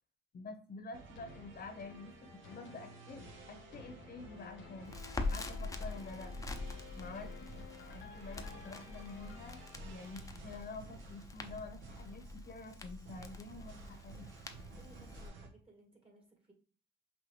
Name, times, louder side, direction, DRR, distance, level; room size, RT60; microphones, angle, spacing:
voice 1, 0.3-6.3 7.0-7.5 7.8-14.3, left 3 dB, 50° left, 6 dB, 1.0 m, -48 dB
sound 1, 0.9-15.5, right 3 dB, 75° right, 1.0 m, -54 dB
sound 2, 1.2-10.5 11.0-11.1, left 8 dB, 75° left, 0.6 m, -56 dB
Crackle, 4.9-15.3, left 3 dB, 15° left, 0.6 m, -44 dB
voice 2, 14.7-16.5, right 2 dB, 30° right, 2 dB, 1.4 m, -61 dB
5.6 x 2.6 x 3.1 m, 0.41 s
cardioid pair, 90°, 20 cm